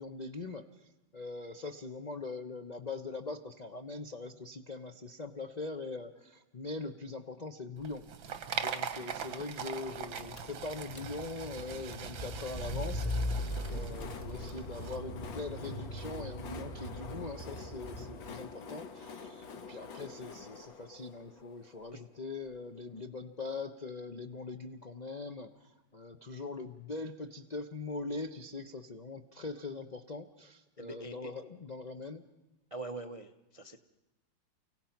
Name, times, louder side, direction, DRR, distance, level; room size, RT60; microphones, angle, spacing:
voice 1, 0.0-32.3, left 3 dB, 55° left, 4 dB, 0.4 m, -42 dB
sound 1, 7.8-15.0, right 8 dB, 90° right, 1.9 m, -41 dB
Car / Engine, 10.1-18.5, left 1 dB, 25° left, 1.1 m, -40 dB
Train, 12.9-22.6, left 5 dB, 75° left, 2.1 m, -48 dB
voice 2, 30.8-31.3 32.7-33.8, right 2 dB, 55° right, 7 dB, 0.3 m, -43 dB
29.5 x 17.0 x 5.8 m, 1.1 s
omnidirectional pair, 2.1 m